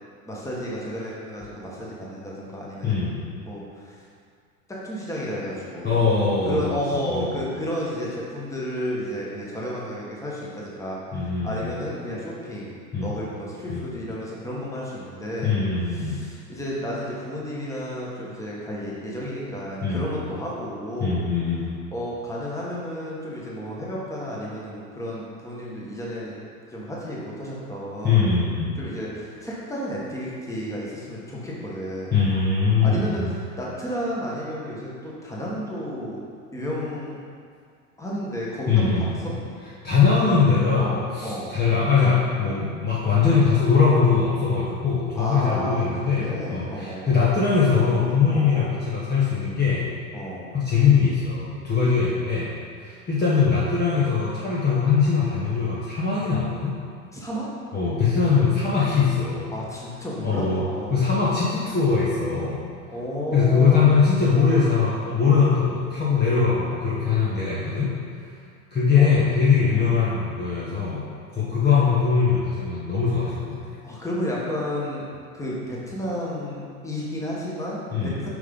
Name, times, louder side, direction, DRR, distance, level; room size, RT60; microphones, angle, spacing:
voice 1, 0.2-3.0 3.4-4.0 4.7-15.6 15.9-21.2 21.9-26.4 26.7-28.3 28.8-32.2 32.8-36.2 36.5-37.2 38.0-39.3 40.8-41.5 45.1-47.1 48.3-48.7 50.1-50.6 57.1-57.5 59.5-61.0 62.9-63.9 69.0-69.1 69.6-70.0 71.6-71.8 73.8-75.1 75.3-78.3, equal, 5° left, -5 dB, 1.5 m, -32 dB
voice 2, 2.8-3.2 5.8-7.4 11.1-11.7 12.9-13.1 13.7-13.8 15.4-16.2 19.8-20.1 21.0-21.7 28.0-28.8 32.1-33.3 38.7-39.1 39.8-49.9 50.5-52.5 52.8-56.8 57.7-59.5 60.2-60.6 60.9-62.6 63.3-67.9 68.7-71.0 71.3-73.6 77.9-78.2, left 5 dB, 20° left, -7 dB, 1.2 m, -21 dB
6.0 x 5.5 x 3.8 m, 2.1 s
hypercardioid pair, 95°, 43 cm